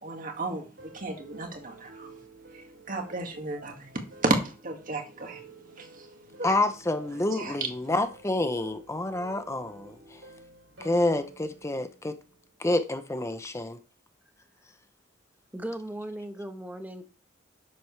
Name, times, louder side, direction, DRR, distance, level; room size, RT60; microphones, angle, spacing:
voice 1, 0.0-2.2 2.5-5.4 5.8-6.1 6.4-6.6 7.3-7.6, right 2 dB, 45° right, 2.0 m, -33 dB
sound 1, 0.8-12.9, right 3 dB, 75° right, 3.2 m, -51 dB
voice 2, 6.4-9.9 10.8-12.2 12.6-13.8, left 2 dB, 15° left, 0.6 m, -28 dB
voice 3, 15.5-17.0, right 1 dB, 10° right, 1.0 m, -37 dB
10.5 x 7.7 x 3.3 m
head